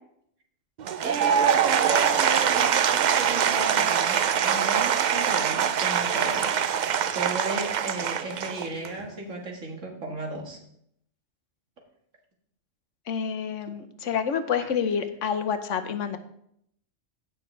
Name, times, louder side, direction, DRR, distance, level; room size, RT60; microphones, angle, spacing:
Applause / Crowd, 0.8-9.0, right 8 dB, 60° right, 0.4 m, -24 dB
voice 1, 1.0-10.6, right 2 dB, 90° right, 1 dB, 2.2 m, -34 dB
voice 2, 13.1-16.2, left 7 dB, 80° left, 9 dB, 1.2 m, -28 dB
16.0 x 6.1 x 3.2 m, 0.72 s
omnidirectional pair, 1.3 m